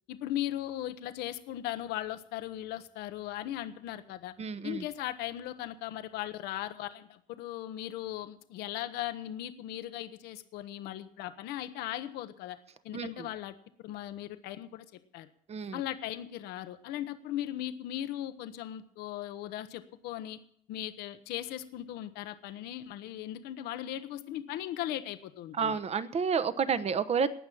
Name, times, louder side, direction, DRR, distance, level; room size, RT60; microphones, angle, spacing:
voice 1, 0.1-4.3 4.6-12.6 12.8-13.6 13.8-15.3 15.7-20.4 20.7-25.8, left 13 dB, 90° left, 11 dB, 1.0 m, -38 dB
voice 2, 4.4-4.8 12.9-13.1 15.5-15.8 25.6-27.3, right 6 dB, 40° right, 14 dB, 1.0 m, -30 dB
18.0 x 6.2 x 8.6 m, 0.65 s
cardioid pair, 105°, 16 cm